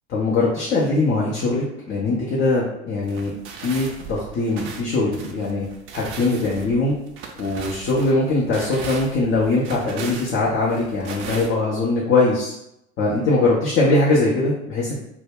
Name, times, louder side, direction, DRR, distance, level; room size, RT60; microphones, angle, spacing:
voice 1, 0.1-3.3 3.6-5.7 5.9-7.0 7.4-12.5 13.0-14.9, left 2 dB, 35° left, -5 dB, 0.6 m, -21 dB
sound 1, 3.0-11.5, right 5 dB, 40° right, 0.4 m, -38 dB
2.2 x 2.1 x 3.4 m, 0.81 s
figure-of-eight pair, 65°, 34 cm